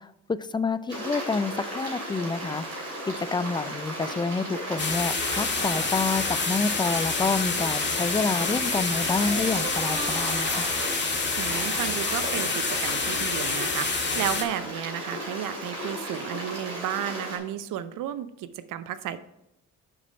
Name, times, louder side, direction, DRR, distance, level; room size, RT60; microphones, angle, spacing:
voice 1, 0.0-10.7, left 4 dB, 15° left, 15 dB, 0.4 m, -28 dB
Stream, 0.9-17.4, right 1 dB, 45° right, 2.9 m, -35 dB
sound 1, 4.8-14.4, left 4 dB, 35° left, 1.8 m, -28 dB
sound 2, 5.5-5.9 9.1-10.8, right 5 dB, 85° right, 1.1 m, -36 dB
voice 2, 11.4-19.2, right 11 dB, 70° right, 14 dB, 0.6 m, -33 dB
6.2 x 6.0 x 5.4 m, 0.86 s
hypercardioid pair, 55°, 33 cm